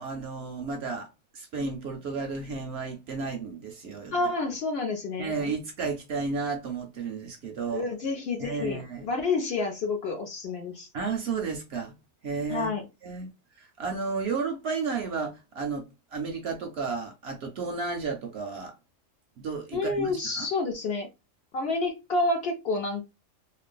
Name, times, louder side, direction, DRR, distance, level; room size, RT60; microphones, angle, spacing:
voice 1, 0.0-4.2 5.2-7.8 8.4-9.1 10.9-12.0 12.2-12.7 13.0-13.3 13.6-18.8 19.4-20.5, right 4 dB, 65° right, 0.7 m, -33 dB
voice 2, 4.1-5.3 7.7-10.9 12.5-12.8 19.7-21.1 21.5-23.0, left 3 dB, 60° left, 0.7 m, -29 dB
3.1 x 2.1 x 2.3 m
omnidirectional pair, 1.4 m